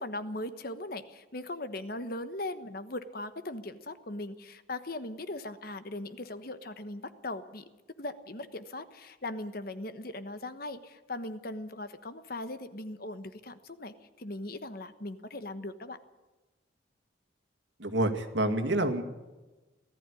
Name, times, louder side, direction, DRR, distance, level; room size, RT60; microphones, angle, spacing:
voice 1, 0.0-7.6 8.0-16.0, left 2 dB, 50° left, 11 dB, 1.2 m, -39 dB
voice 2, 17.8-19.0, right 1 dB, 70° right, 5 dB, 2.1 m, -28 dB
19.0 x 14.0 x 9.8 m, 1.2 s
head